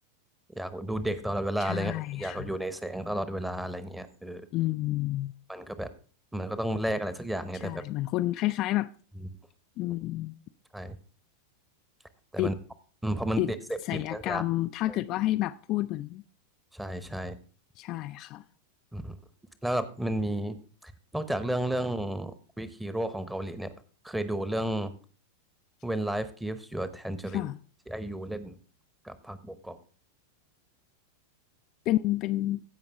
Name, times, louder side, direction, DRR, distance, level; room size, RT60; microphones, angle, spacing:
voice 1, 0.6-4.5 5.5-5.9 6.3-7.8 10.7-11.0 12.3-12.5 13.0-13.6 13.9-14.4 14.9-15.0 16.7-17.4 18.9-19.2 19.6-20.6 20.8-23.7 24.0-24.9 25.8-27.5 27.9-28.6 29.0-29.8, right 1 dB, 5° right, 0.9 m, -32 dB
voice 2, 1.6-2.5 4.5-5.3 7.6-8.9 9.8-10.4 12.4-12.5 13.4-13.5 13.9-16.2 17.8-18.4 27.3-27.6 31.9-32.6, left 16 dB, 40° left, 0.3 m, -29 dB
15.5 x 5.4 x 3.4 m
figure-of-eight pair, 90°, 0 cm